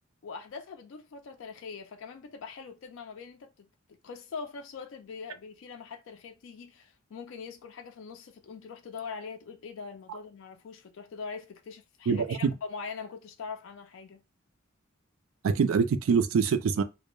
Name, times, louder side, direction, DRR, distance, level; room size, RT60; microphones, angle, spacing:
voice 1, 0.2-3.7 4.0-14.2, left 5 dB, 70° left, 0.4 m, -42 dB
voice 2, 12.1-12.5 15.4-16.8, right 5 dB, 80° right, 0.4 m, -24 dB
2.1 x 2.1 x 3.0 m
head